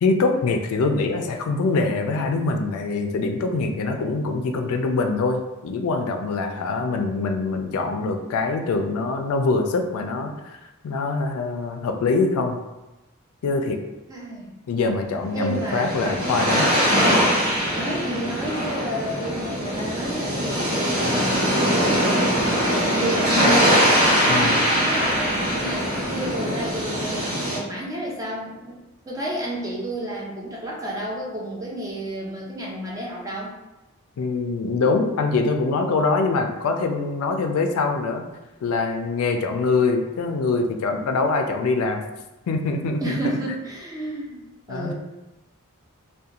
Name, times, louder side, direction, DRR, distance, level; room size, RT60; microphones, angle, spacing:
voice 1, 0.0-10.6 10.8-12.6 13.4-13.8 14.7-16.7 24.3-24.6 34.2-38.2 38.6-42.0 42.5-43.2 44.7-44.9, left 3 dB, 75° left, 5 dB, 0.3 m, -24 dB
voice 2, 14.1-14.5 14.8-15.0 15.3-16.7 17.7-20.7 20.9-22.6 22.9-23.9 24.2-28.8 29.1-33.5 43.0-44.9, right 1 dB, 15° right, -4 dB, 0.4 m, -31 dB
sound 1, 15.3-27.6, equal, 75° right, 0.9 m, -22 dB
2.8 x 2.2 x 2.4 m, 1.0 s
head